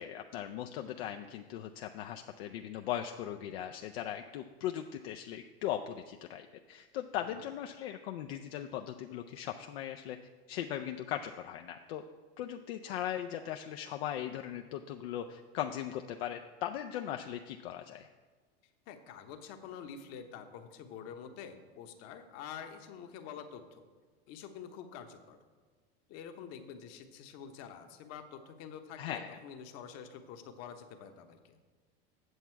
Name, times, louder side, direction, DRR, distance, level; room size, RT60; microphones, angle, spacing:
voice 1, 0.0-10.2 10.5-12.0 12.4-18.1 29.0-29.4, left 11 dB, 75° left, 4 dB, 0.5 m, -39 dB
voice 2, 18.9-23.8 24.3-25.4 26.1-31.6, left 7 dB, 55° left, 7 dB, 1.0 m, -47 dB
8.1 x 7.1 x 4.5 m, 1.5 s
hypercardioid pair, 100°, 31 cm